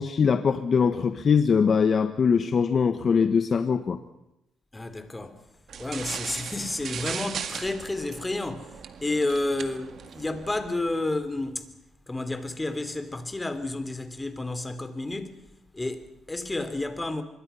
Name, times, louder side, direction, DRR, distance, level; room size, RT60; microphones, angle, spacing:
voice 1, 0.0-4.0, left 6 dB, 45° left, 1.3 m, -22 dB
voice 2, 4.7-5.4 5.8-8.7 9.0-11.7 12.1-15.4 15.7-17.2, left 2 dB, 15° left, 3.0 m, -31 dB
sound 1, 5.7-11.0, right 7 dB, 60° right, 1.9 m, -38 dB
25.5 x 23.0 x 5.6 m
cardioid pair, 90°, 0 cm